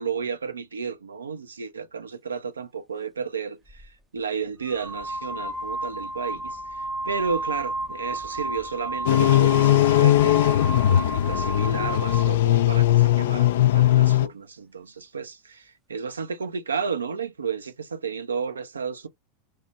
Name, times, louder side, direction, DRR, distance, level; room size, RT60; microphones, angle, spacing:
voice 1, 0.0-10.4 10.9-19.1, right 6 dB, 90° right, 0.5 m, -32 dB
sound 1, 3.7-3.9 4.7-12.4, right 2 dB, 15° right, 0.5 m, -32 dB
sound 2, 9.0-14.3, left 13 dB, 70° left, 0.3 m, -19 dB
3.1 x 2.1 x 4.0 m
hypercardioid pair, 90°, 0 cm